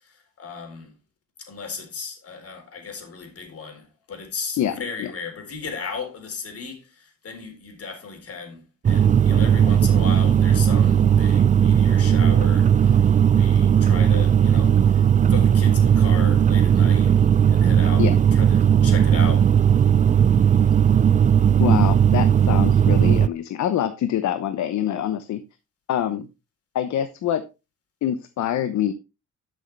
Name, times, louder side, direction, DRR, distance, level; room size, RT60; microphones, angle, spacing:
voice 1, 0.4-0.9 1.5-13.1 13.3-15.0 15.3-19.5, left 5 dB, 50° left, 3.9 m, -36 dB
voice 2, 4.6-5.1 18.0-18.1 21.6-25.4 25.9-26.3 26.7-27.4 28.0-28.9, left 10 dB, 70° left, 1.0 m, -25 dB
sound 1, 8.8-23.3, right 8 dB, 25° right, 0.4 m, -17 dB
11.5 x 6.4 x 3.3 m
cardioid pair, 90°, 30 cm